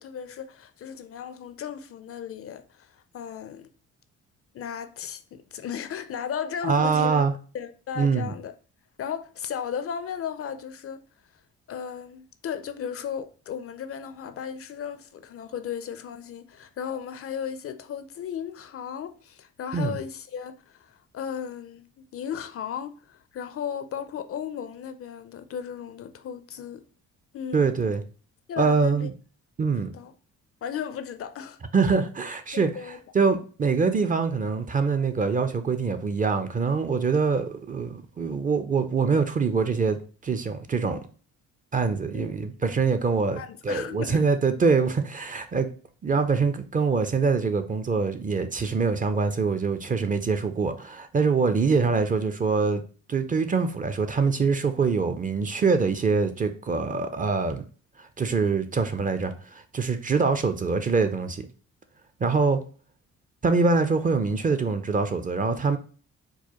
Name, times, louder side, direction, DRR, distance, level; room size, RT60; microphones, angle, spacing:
voice 1, 0.0-3.7 4.5-7.2 7.5-8.5 9.0-11.0 11.7-26.8 27.3-27.8 28.5-29.1 29.7-30.1 30.6-31.6 32.5-33.0 42.1-42.3 43.4-44.3, left 8 dB, 50° left, 0.4 m, -35 dB
voice 2, 6.6-7.3 8.0-8.3 19.7-20.0 27.5-28.0 28.6-29.1 29.6-29.9 31.7-41.0 41.7-45.7 46.0-52.8 53.1-57.6 58.0-61.5 62.2-62.6 63.4-65.8, right 4 dB, 25° right, 0.5 m, -24 dB
4.6 x 2.1 x 2.9 m
cardioid pair, 90°, 30 cm